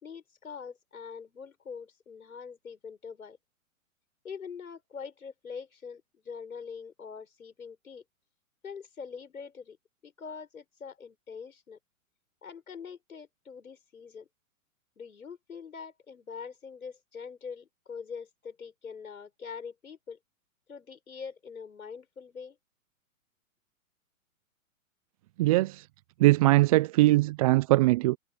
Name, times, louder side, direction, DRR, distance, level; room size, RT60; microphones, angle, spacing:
voice 1, 0.0-3.4 4.2-8.0 8.6-9.8 10.0-11.8 12.4-14.3 15.0-20.2 20.7-22.6, left 6 dB, 90° left, 5.2 m, -43 dB
voice 2, 25.4-25.9 26.2-28.2, right 18 dB, 30° right, 0.4 m, -21 dB
hypercardioid pair, 125°, 41 cm